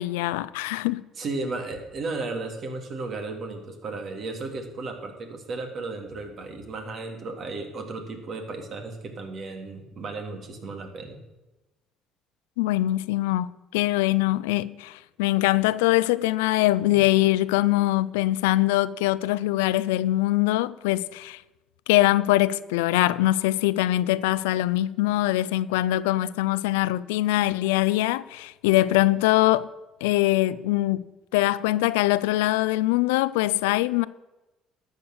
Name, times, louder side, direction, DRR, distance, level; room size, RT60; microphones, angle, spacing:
voice 1, 0.0-1.0 12.6-21.4 21.9-29.7 30.0-31.0 31.3-34.1, left 16 dB, 90° left, 0.4 m, -23 dB
voice 2, 1.2-11.2 16.8-17.0, right 3 dB, 50° right, 2.4 m, -34 dB
12.0 x 7.0 x 6.4 m
supercardioid pair, 70°, 0 cm